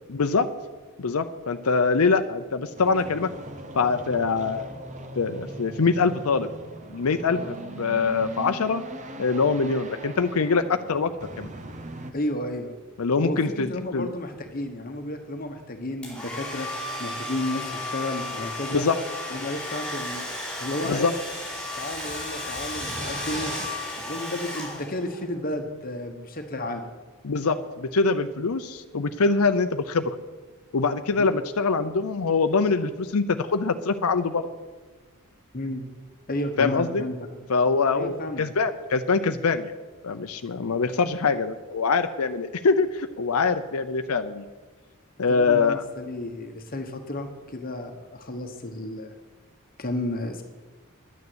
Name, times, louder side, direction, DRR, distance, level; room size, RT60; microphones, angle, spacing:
voice 1, 0.1-0.5 1.0-3.3 3.7-4.7 5.2-6.5 6.9-7.4 7.8-8.8 9.2-11.1 11.4-11.5 13.0-14.1 18.7-19.0 20.8-21.1 27.2-30.2 30.7-34.5 36.6-37.0 37.5-39.7 40.0-44.4 45.2-45.8, left 4 dB, 75° left, 8 dB, 0.6 m, -24 dB
sound 1, 2.8-12.1, right 2 dB, 35° right, 0.8 m, -40 dB
voice 2, 12.1-12.8 13.2-16.7 17.0-18.8 19.3-20.3 20.6-21.1 21.8-23.5 24.0-26.9 31.3-31.4 35.5-35.9 36.3-37.2 37.9-38.4 45.3-49.1 49.8-50.4, left 1 dB, 40° left, 5 dB, 1.2 m, -32 dB
Domestic sounds home sounds, 16.0-25.2, left 1 dB, 5° left, 4.7 m, -34 dB
11.0 x 9.5 x 8.0 m, 1.3 s
head